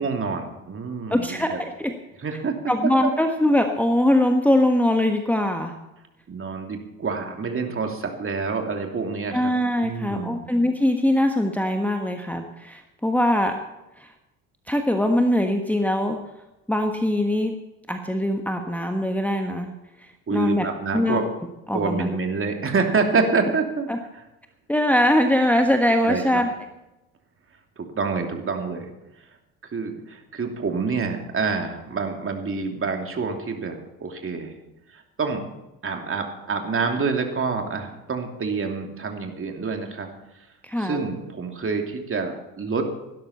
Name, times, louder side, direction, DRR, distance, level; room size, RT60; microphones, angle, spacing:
voice 1, 0.0-1.6 2.2-2.6 3.0-3.1 6.3-9.5 9.8-10.4 20.3-21.2 21.7-23.9 26.0-26.4 27.8-28.9 29.6-34.5 34.9-35.4 35.8-40.1 40.8-42.9, right 4 dB, 30° right, 3 dB, 2.9 m, -27 dB
voice 2, 1.1-1.9 2.7-5.7 9.3-13.6 14.0-14.1 14.7-16.2 16.7-17.5 17.9-19.7 20.0-20.7 20.9-21.3 21.7-22.1 23.9-24.0 24.7-26.5 40.6-41.0, left 1 dB, 5° left, 4 dB, 1.4 m, -22 dB
17.0 x 12.5 x 4.3 m, 0.96 s
figure-of-eight pair, 60°, 43 cm